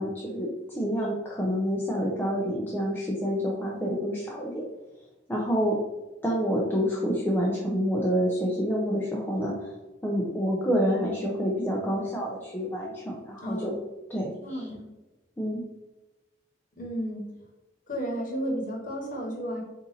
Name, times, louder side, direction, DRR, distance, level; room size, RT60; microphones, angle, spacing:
voice 1, 0.0-4.6 5.3-5.8 6.2-9.7 10.0-13.7 14.1-14.6 15.4-15.6, equal, 10° left, -4 dB, 0.6 m, -28 dB
voice 2, 13.4-13.8 14.4-14.8 16.8-17.3 17.9-19.6, equal, 45° left, -1 dB, 1.1 m, -32 dB
4.1 x 2.6 x 4.0 m, 1.1 s
head